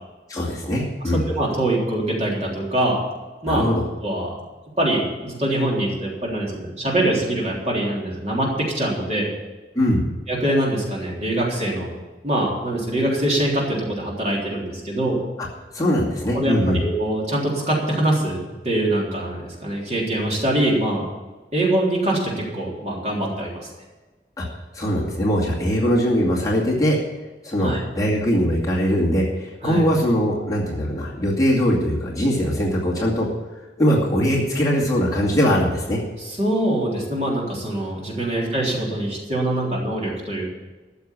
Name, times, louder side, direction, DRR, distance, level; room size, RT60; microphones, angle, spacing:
voice 1, 0.3-1.2 3.4-3.8 9.7-10.1 15.7-16.8 24.4-24.5 24.7-27.0 27.4-33.3 33.8-36.0, equal, 20° left, -4 dB, 2.3 m, -21 dB
voice 2, 1.0-3.0 3.4-3.7 4.0-4.3 4.8-9.3 10.3-11.9 12.2-15.2 16.3-21.1 21.5-23.7 27.6-27.8 29.6-29.8 36.2-40.5, right 1 dB, 40° right, -3 dB, 3.7 m, -23 dB
13.5 x 7.0 x 8.6 m, 1.2 s
head